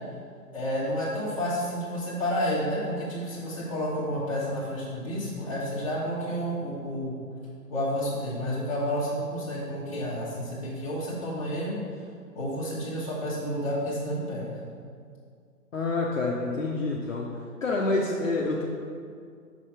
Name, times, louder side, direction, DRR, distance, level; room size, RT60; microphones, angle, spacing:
voice 1, 0.5-7.2 7.7-11.8 12.3-14.6, equal, 20° left, -10 dB, 1.3 m, -30 dB
voice 2, 15.7-18.6, left 3 dB, 55° left, -2 dB, 0.7 m, -28 dB
6.3 x 3.4 x 5.6 m, 2.3 s
hypercardioid pair, 180°, 47 cm